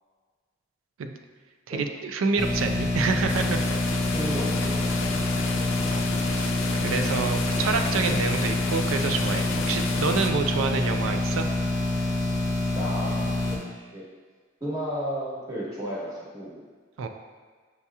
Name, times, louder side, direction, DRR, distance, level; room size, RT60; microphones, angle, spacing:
voice 1, 1.7-3.6 5.9-6.6 6.8-11.5 17.0-17.1, right 5 dB, 90° right, 6 dB, 0.4 m, -28 dB
sound 1, 2.4-13.6, left 2 dB, 20° left, 0.6 m, -26 dB
sound 2, 3.3-10.3, left 4 dB, 75° left, 0.4 m, -33 dB
voice 2, 4.0-5.6 12.7-13.6 13.9-14.0 14.6-16.6, equal, 20° right, -7 dB, 1.1 m, -34 dB
6.8 x 2.8 x 2.3 m, 1.5 s
head